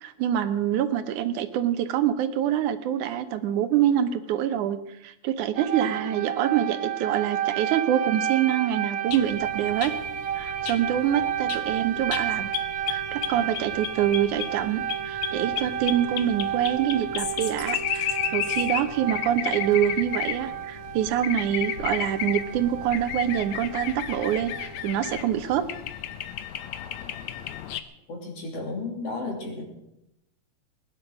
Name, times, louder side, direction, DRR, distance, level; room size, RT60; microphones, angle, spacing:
voice 1, 0.0-4.8 5.0-9.9 10.4-12.5 12.9-25.6, right 10 dB, 85° right, 10 dB, 2.5 m, -25 dB
sound 1, 5.5-25.1, right 10 dB, 55° right, 1.9 m, -32 dB
sound 2, 9.1-27.8, left 11 dB, 75° left, 2.1 m, -34 dB
voice 2, 28.1-29.6, left 3 dB, 55° left, 1 dB, 4.2 m, -33 dB
20.5 x 10.5 x 6.2 m, 0.85 s
omnidirectional pair, 3.4 m